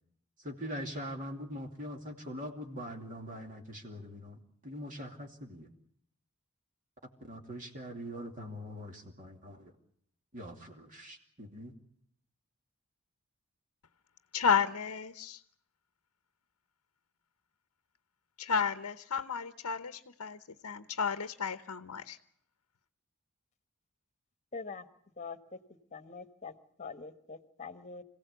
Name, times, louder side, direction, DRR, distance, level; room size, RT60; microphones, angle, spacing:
voice 1, 0.4-5.7 7.2-9.7 10.3-11.7, equal, 35° right, 2 dB, 2.8 m, -43 dB
voice 2, 14.3-15.4 18.4-22.2, left 6 dB, 90° left, 10 dB, 0.9 m, -32 dB
voice 3, 24.5-24.8 25.2-25.4 25.9-26.5 26.8-28.0, left 4 dB, 30° left, 9 dB, 1.4 m, -43 dB
26.5 x 17.0 x 8.3 m, 0.71 s
head